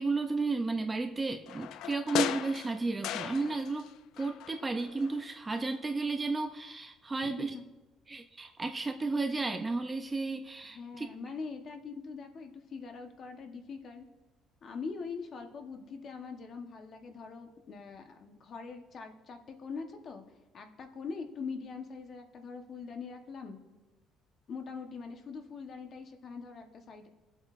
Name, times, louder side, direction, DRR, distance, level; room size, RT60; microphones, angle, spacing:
voice 1, 0.0-3.9 4.2-7.5 8.1-11.1, right 3 dB, 15° right, 6 dB, 0.4 m, -33 dB
sound 1, 1.5-3.9 4.2-5.2 5.6-5.7, left 11 dB, 65° left, 0.3 m, -37 dB
voice 2, 7.2-7.6 10.7-14.0 14.6-20.2 20.5-23.6 24.5-27.1, left 5 dB, 35° left, 5 dB, 1.0 m, -43 dB
20.0 x 7.8 x 2.5 m, 1.1 s
cardioid pair, 170°, 0 cm